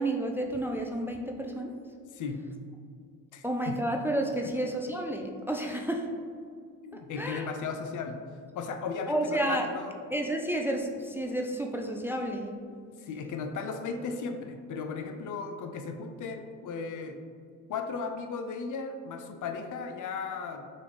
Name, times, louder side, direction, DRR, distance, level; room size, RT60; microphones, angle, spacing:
voice 1, 0.0-1.7 3.4-6.1 6.9-7.5 9.1-9.7 10.1-12.5, right 1 dB, 5° right, 2 dB, 0.4 m, -31 dB
voice 2, 2.1-2.5 3.3-3.8 4.4-4.5 6.8-8.2 8.5-10.0 13.0-17.2 17.7-20.6, left 5 dB, 50° left, 6 dB, 0.6 m, -36 dB
6.5 x 2.4 x 3.3 m, 2.2 s
hypercardioid pair, 45°, 39 cm